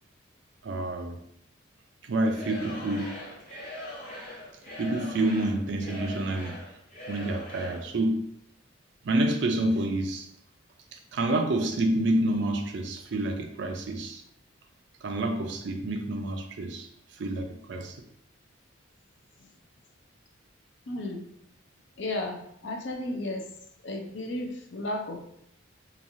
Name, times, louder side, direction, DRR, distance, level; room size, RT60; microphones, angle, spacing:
voice 1, 0.6-1.2 2.0-3.2 4.8-6.6 7.1-8.3 9.0-10.3 10.9-14.2 15.0-16.9 17.1-18.0, right 1 dB, 60° right, 5 dB, 0.4 m, -28 dB
Singing / Crowd, 2.2-7.9, left 1 dB, 40° left, 1.0 m, -41 dB
voice 2, 20.9-21.2 22.0-23.4 23.8-25.2, left 1 dB, 65° left, 3 dB, 0.5 m, -33 dB
3.0 x 2.3 x 2.6 m, 0.70 s
head